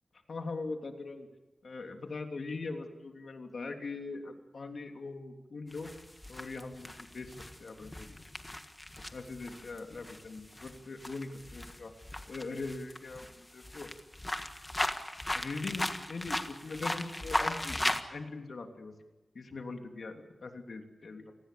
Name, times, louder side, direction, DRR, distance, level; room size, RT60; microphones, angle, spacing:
voice 1, 0.3-1.3 1.6-5.9 6.3-8.2 9.1-11.9 12.3-13.9 15.3-19.0 19.3-21.3, left 3 dB, 55° left, 4 dB, 3.1 m, -41 dB
sound 1, 5.7-18.0, left 1 dB, 15° left, 1.6 m, -37 dB
29.0 x 19.5 x 7.0 m, 1.1 s
wide cardioid pair, 135°, 0 cm